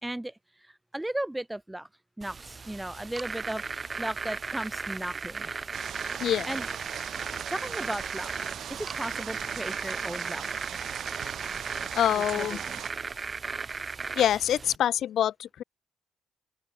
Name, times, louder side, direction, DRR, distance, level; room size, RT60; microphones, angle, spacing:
voice 1, 0.0-0.3 0.9-1.9 2.2-5.5 6.2-6.7 7.5-8.3 8.7-10.4 12.1-12.8, right 1 dB, 10° right, 5.1 m, -36 dB
sound 1, 2.2-14.8, right 4 dB, 40° right, 3.8 m, -36 dB
sound 2, 5.7-12.9, right 10 dB, 70° right, 5.6 m, -39 dB
voice 2, 12.0-12.6 14.2-15.6, left 10 dB, 70° left, 4.4 m, -25 dB
open air
supercardioid pair, 55°, 0 cm